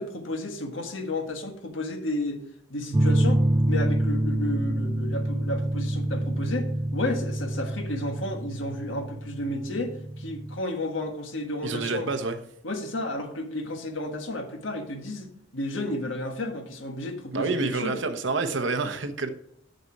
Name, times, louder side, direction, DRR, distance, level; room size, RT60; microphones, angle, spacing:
voice 1, 0.0-2.4 2.7-12.1 12.6-15.3 15.5-18.0, left 1 dB, 85° left, 4 dB, 1.5 m, -32 dB
sound 1, 2.9-10.6, right 1 dB, 20° right, 0.4 m, -26 dB
voice 2, 11.6-12.4 17.3-19.3, right 3 dB, 70° right, 8 dB, 1.0 m, -28 dB
6.8 x 6.8 x 4.6 m, 0.74 s
head